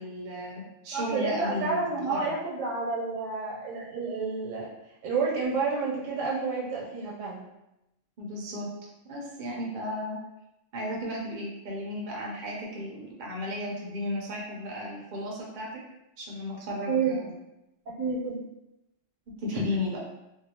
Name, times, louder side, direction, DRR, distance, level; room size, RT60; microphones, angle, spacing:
voice 1, 0.0-2.3 8.2-8.7 9.0-10.2 10.7-15.8 16.2-17.3 19.4-20.0, left 1 dB, 50° right, -3 dB, 0.7 m, -34 dB
voice 2, 0.9-4.7 5.0-7.4 16.9-17.2 17.9-18.4, right 4 dB, 80° right, -5 dB, 1.1 m, -30 dB
2.7 x 2.3 x 2.7 m, 0.89 s
omnidirectional pair, 1.3 m